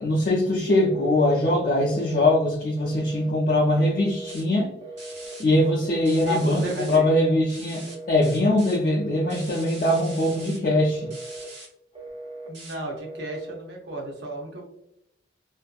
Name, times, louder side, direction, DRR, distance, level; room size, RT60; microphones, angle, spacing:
voice 1, 0.0-4.7 5.4-11.1, left 1 dB, 45° left, -3 dB, 0.4 m, -22 dB
Telephone, 0.7-1.3 1.8-2.3 2.8-3.3 3.8-4.4 4.8-5.4 5.8-6.4 6.9-7.4 7.9-8.4 8.9-9.5 9.9-10.5 10.9-11.5 12.0-12.5 13.0-13.5, right 2 dB, 30° right, 0.3 m, -39 dB
sound 1, 4.3-4.4 5.0-5.4 6.1-7.0 7.5-7.9 8.2-8.8 9.3-10.6 11.1-11.7 12.5-12.7, right 2 dB, 75° right, 1.2 m, -43 dB
voice 2, 6.1-7.1 12.5-14.6, right 1 dB, 60° right, 0 dB, 0.6 m, -34 dB
2.6 x 2.4 x 2.2 m, 0.79 s
head